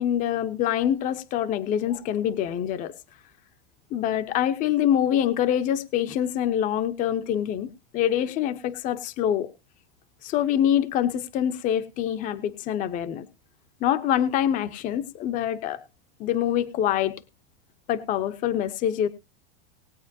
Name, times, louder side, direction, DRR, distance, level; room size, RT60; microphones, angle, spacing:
voice 1, 0.0-2.9 3.9-9.5 10.2-13.3 13.8-15.8 16.2-17.2 17.9-19.1, left 10 dB, 25° left, 0.7 m, -25 dB
19.5 x 8.9 x 2.6 m
supercardioid pair, 155°, 30 cm